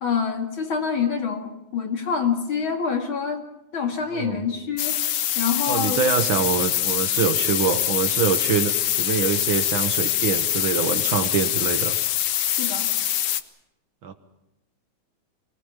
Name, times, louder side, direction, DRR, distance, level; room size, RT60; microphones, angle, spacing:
voice 1, 0.0-3.4 3.7-5.0 5.4-6.1 12.5-12.9, left 6 dB, 45° left, 5 dB, 2.7 m, -26 dB
sound 1, 4.8-13.4, left 11 dB, 65° left, 1.4 m, -24 dB
voice 2, 5.7-11.9 14.0-14.1, right 6 dB, 55° right, 10 dB, 1.6 m, -25 dB
25.0 x 19.0 x 7.3 m, 0.93 s
omnidirectional pair, 3.4 m